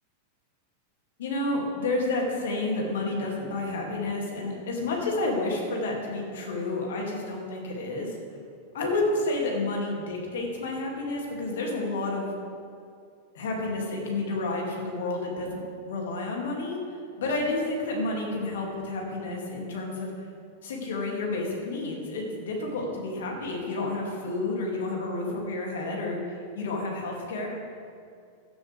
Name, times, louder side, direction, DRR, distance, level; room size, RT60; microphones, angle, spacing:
voice 1, 1.2-8.2 8.7-12.3 13.3-15.6 15.9-16.8 17.2-20.1 20.6-27.5, left 2 dB, 60° left, -1 dB, 2.8 m, -30 dB
16.0 x 12.0 x 3.5 m, 2.3 s
figure-of-eight pair, 90°, 0 cm